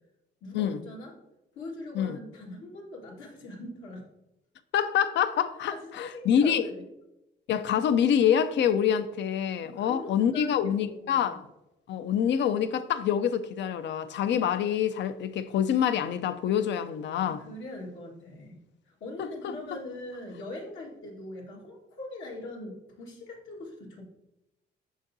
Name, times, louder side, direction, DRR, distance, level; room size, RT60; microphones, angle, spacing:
voice 1, 0.4-1.1 1.6-4.0 5.7-6.8 9.6-11.4 17.2-18.6 18.9-24.0, left 2 dB, 80° left, 1.7 m, -42 dB
voice 2, 4.7-6.6 7.5-11.5 11.9-17.4 19.2-19.5, left 8 dB, 65° left, 0.5 m, -26 dB
6.3 x 5.9 x 2.7 m
cardioid pair, 90°, 20 cm